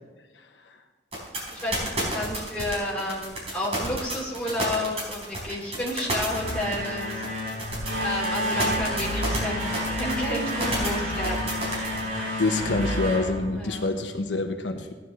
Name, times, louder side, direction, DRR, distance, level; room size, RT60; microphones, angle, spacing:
sound 1, 1.1-12.0, right 1 dB, 35° right, 4.3 m, -30 dB
voice 1, 1.5-7.3 7.5-7.6 8.0-12.2 13.6-13.9, left 1 dB, 5° left, -5 dB, 2.8 m, -31 dB
sound 2, 6.2-14.1, left 1 dB, 85° right, 3.6 m, -30 dB
voice 2, 12.4-14.9, left 2 dB, 90° left, 5 dB, 1.0 m, -26 dB
17.0 x 10.0 x 3.2 m, 1.3 s
head